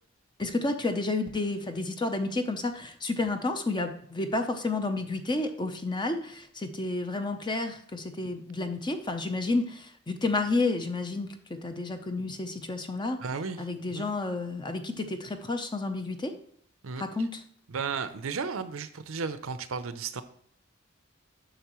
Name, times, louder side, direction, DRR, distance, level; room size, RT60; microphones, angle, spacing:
voice 1, 0.4-13.2 13.6-16.3 17.0-17.4, left 2 dB, 20° left, 7 dB, 0.7 m, -31 dB
voice 2, 13.2-13.7 13.9-14.1 16.8-17.0 17.7-20.2, right 5 dB, 70° right, 12 dB, 0.6 m, -34 dB
8.0 x 6.3 x 3.0 m, 0.63 s
head